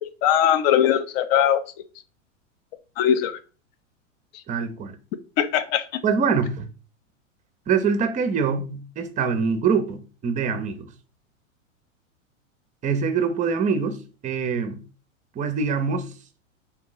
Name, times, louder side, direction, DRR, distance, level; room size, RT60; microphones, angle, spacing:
voice 1, 0.0-1.6 3.0-3.4 5.4-5.8, left 10 dB, 50° left, 0.6 m, -20 dB
voice 2, 4.5-5.0 6.0-6.7 7.7-10.9 12.8-14.8 15.4-16.1, right 5 dB, 20° right, 0.6 m, -24 dB
3.8 x 2.9 x 3.8 m
hypercardioid pair, 105°, 39 cm